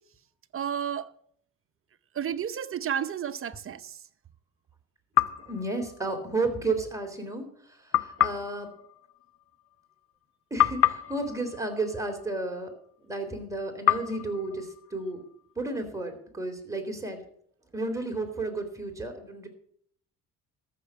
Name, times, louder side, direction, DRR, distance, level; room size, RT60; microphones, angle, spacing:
voice 1, 0.5-1.1 2.1-3.9, right 8 dB, 45° right, 0.8 m, -31 dB
sound 1, 5.1-6.5 7.9-10.2 10.6-12.9 13.9-15.7, left 11 dB, 50° left, 0.9 m, -30 dB
voice 2, 5.4-8.7 10.5-12.7 13.0-15.2 15.6-17.2 17.7-19.5, right 2 dB, 10° right, 3.5 m, -32 dB
13.5 x 6.7 x 7.6 m
cardioid pair, 90°, 30 cm